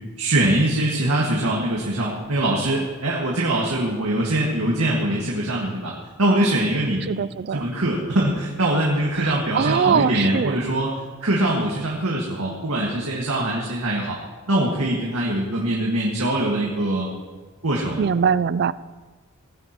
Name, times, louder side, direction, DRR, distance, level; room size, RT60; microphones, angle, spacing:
voice 1, 0.2-5.9 6.2-10.9 11.2-14.2 14.5-17.1 17.6-18.0, right 1 dB, 85° right, -3 dB, 1.9 m, -23 dB
voice 2, 7.1-7.6 9.2-10.6 18.0-18.7, right 7 dB, 50° right, 18 dB, 0.3 m, -22 dB
18.5 x 15.0 x 3.0 m, 1.3 s
head